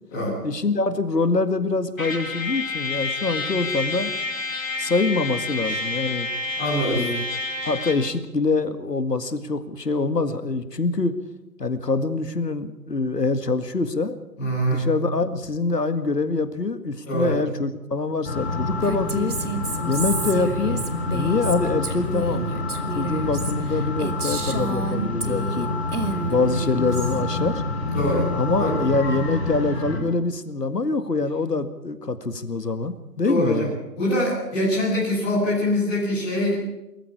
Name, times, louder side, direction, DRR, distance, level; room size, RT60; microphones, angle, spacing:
voice 1, 0.4-4.1 4.8-6.3 6.9-7.2 7.6-11.2 11.6-14.2 14.7-19.4 19.8-20.8 21.1-22.5 22.9-25.7 26.3-27.6 28.3-33.7, left 3 dB, 75° left, 11 dB, 2.1 m, -25 dB
Trumpet, 2.0-8.1, left 3 dB, 55° left, 4.6 m, -29 dB
voice 2, 6.6-7.1 14.4-14.9 17.0-17.4 27.9-28.2 28.6-28.8 33.2-33.7 33.9-36.5, equal, ahead, -15 dB, 1.4 m, -23 dB
sound 1, 18.2-30.0, left 2 dB, 35° left, 5.4 m, -27 dB
Female speech woman speaking, 18.8-25.7 25.9-27.2, right 3 dB, 65° right, 2.4 m, -31 dB
23.5 x 14.5 x 8.5 m, 0.94 s
figure-of-eight pair, 170°, 49 cm